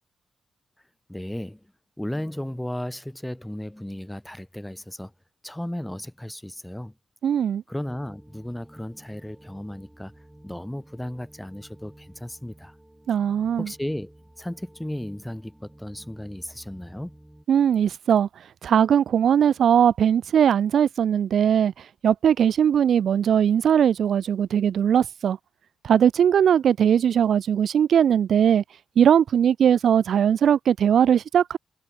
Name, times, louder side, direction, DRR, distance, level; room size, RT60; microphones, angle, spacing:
voice 1, 1.1-1.6 2.0-5.1 5.4-6.9 7.7-10.1 10.4-12.8 13.6-17.2, left 1 dB, 5° left, 3.5 m, -35 dB
voice 2, 7.2-7.6 13.1-13.7 17.5-18.3 18.6-21.7 22.0-25.4 25.8-28.6 29.0-31.6, right 8 dB, 70° right, 0.5 m, -20 dB
sound 1, 7.8-17.5, right 1 dB, 10° right, 7.7 m, -52 dB
supercardioid pair, 50°, 0 cm